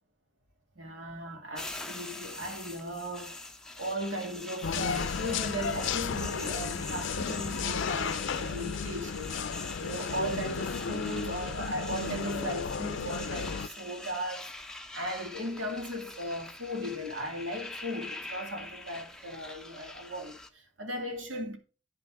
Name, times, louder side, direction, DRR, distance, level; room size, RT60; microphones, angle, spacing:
voice 1, 0.8-3.4 3.8-9.4 9.8-14.5 14.9-21.6, equal, 85° right, 2.2 m, -37 dB
sound 1, 1.5-20.5, left 2 dB, 5° left, 0.8 m, -44 dB
sound 2, 4.6-13.7, left 6 dB, 75° left, 0.5 m, -34 dB
9.5 x 5.8 x 4.7 m
head